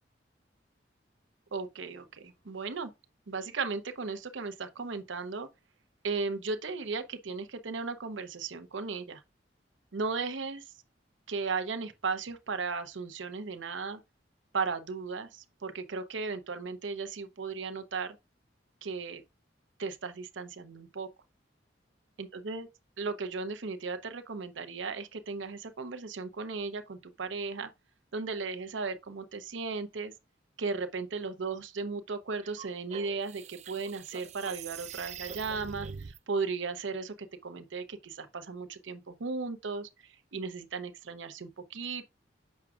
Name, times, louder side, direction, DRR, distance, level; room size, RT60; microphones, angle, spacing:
voice 1, 1.5-2.9 3.3-5.5 6.0-9.2 9.9-10.6 11.3-14.0 14.5-18.2 18.8-19.2 19.8-21.1 22.2-22.7 23.0-27.7 28.1-30.1 30.6-37.1 37.4-42.0, right 4 dB, 85° right, 0.7 m, -36 dB
sound 1, 32.4-36.2, right 7 dB, 40° right, 0.4 m, -44 dB
7.3 x 5.9 x 2.4 m
head